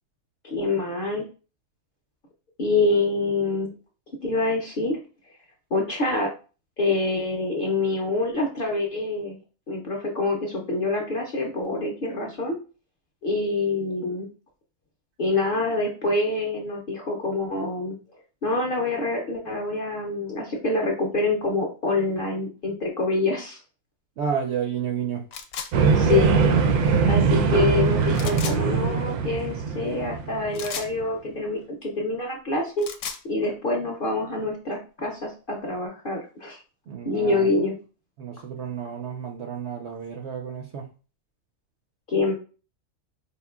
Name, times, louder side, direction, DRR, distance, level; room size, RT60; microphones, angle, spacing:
voice 1, 0.4-1.2 2.6-3.7 4.2-5.0 5.7-6.3 6.8-9.4 9.7-12.6 13.2-14.3 15.2-18.0 18.4-23.6 25.9-26.3 27.1-32.9 33.2-36.6 37.0-37.8 42.1-42.3, left 2 dB, 50° left, 0 dB, 0.6 m, -26 dB
voice 2, 24.2-25.2 36.9-37.5 38.2-40.9, right 7 dB, 65° right, 3 dB, 0.7 m, -31 dB
sound 1, 25.3-25.7 28.1-28.6 30.5-30.9 32.6-33.2, left 7 dB, 75° left, 0.9 m, -34 dB
sound 2, 25.7-31.0, right 5 dB, 90° right, 1.1 m, -21 dB
4.1 x 3.6 x 2.3 m, 0.35 s
omnidirectional pair, 1.6 m